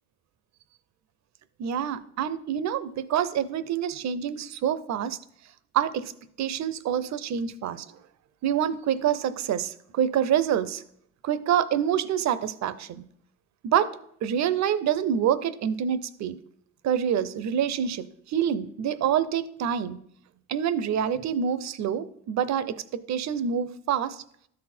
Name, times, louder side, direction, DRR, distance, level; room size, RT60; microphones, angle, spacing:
voice 1, 1.6-5.2 5.7-6.0 6.4-7.9 8.4-10.8 11.2-13.0 13.6-14.0 14.2-16.4 16.8-20.0 20.5-24.2, right 9 dB, 65° right, 15 dB, 0.6 m, -26 dB
12.5 x 4.2 x 4.3 m, 0.69 s
cardioid pair, 90°, 30 cm